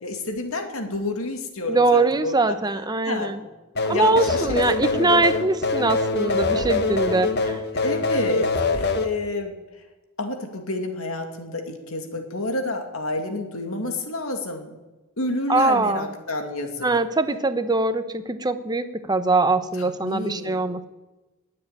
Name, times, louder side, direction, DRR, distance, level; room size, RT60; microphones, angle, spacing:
voice 1, 0.0-2.6 3.0-3.5 3.9-5.4 7.7-9.5 10.2-14.7 15.2-16.9 19.7-20.6, left 2 dB, 70° left, 4 dB, 2.5 m, -29 dB
voice 2, 1.7-3.4 3.9-7.6 15.5-16.1 16.8-20.8, right 3 dB, 20° right, 10 dB, 0.9 m, -22 dB
sound 1, 3.7-9.1, left 3 dB, 50° left, 1.3 m, -24 dB
20.0 x 7.8 x 8.9 m, 1.1 s
head